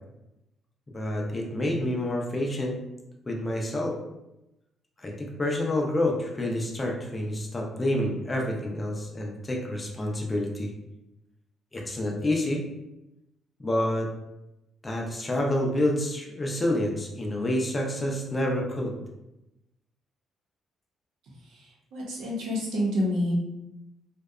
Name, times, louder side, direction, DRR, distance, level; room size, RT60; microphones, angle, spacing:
voice 1, 0.9-2.9 3.3-4.0 5.0-10.7 11.7-12.7 13.6-14.2 14.8-19.0, left 1 dB, 15° left, 0 dB, 0.4 m, -28 dB
voice 2, 21.9-23.3, left 1 dB, 80° right, -3 dB, 0.7 m, -27 dB
2.7 x 2.1 x 2.3 m, 0.93 s
cardioid pair, 155°, 0 cm